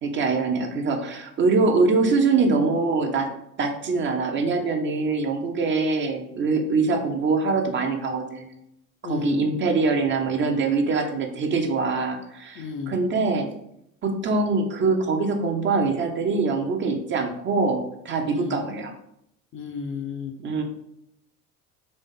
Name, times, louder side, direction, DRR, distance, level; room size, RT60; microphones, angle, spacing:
voice 1, 0.0-3.3 3.6-8.5 9.0-13.5 14.0-18.9 20.4-20.6, right 4 dB, 25° right, 3 dB, 0.7 m, -23 dB
voice 2, 9.0-9.4 12.5-12.9 18.3-18.6 19.5-20.4, left 5 dB, 30° left, 4 dB, 0.6 m, -32 dB
4.0 x 3.3 x 3.6 m, 0.77 s
figure-of-eight pair, 70°, 44 cm